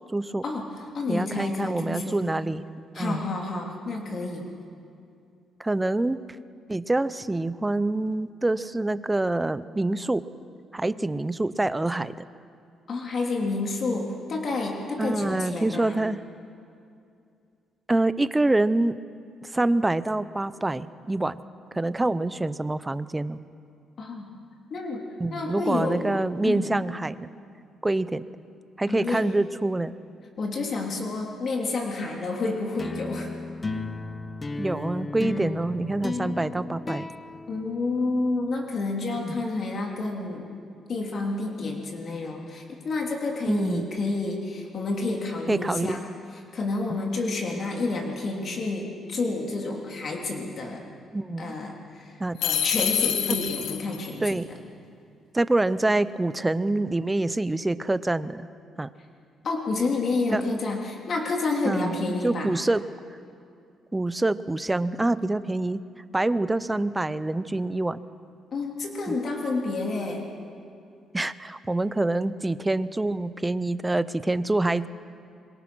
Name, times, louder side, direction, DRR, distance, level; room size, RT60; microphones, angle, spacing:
voice 1, 0.1-0.4 1.1-2.6 3.0-3.3 5.6-6.3 6.7-10.2 10.7-12.1 15.0-16.2 17.9-19.0 19.4-21.4 21.7-23.4 25.2-27.3 27.8-28.2 28.8-29.9 34.6-37.1 39.1-39.3 43.5-43.9 45.5-46.0 46.9-47.0 51.1-51.5 52.2-52.4 54.2-54.4 55.3-58.5 58.8-58.9 60.3-60.4 61.7-62.8 63.9-65.8 66.1-68.0 69.1-69.2 71.1-74.9, right 2 dB, 15° right, 15 dB, 0.8 m, -26 dB
voice 2, 0.9-2.2 2.9-4.4 12.9-16.0 24.0-24.3 24.7-25.0 25.3-26.1 26.4-26.7 28.9-29.3 30.4-33.3 37.5-40.4 40.9-46.0 46.5-50.9 51.4-54.4 59.4-62.5 68.5-70.2, left 3 dB, 50° left, 0 dB, 3.1 m, -29 dB
sound 1, 32.8-38.4, left 3 dB, 30° left, 1.0 m, -34 dB
sound 2, 52.4-54.1, left 9 dB, 85° left, 1.6 m, -26 dB
26.0 x 22.0 x 6.3 m, 2.4 s
cardioid pair, 90°, 0 cm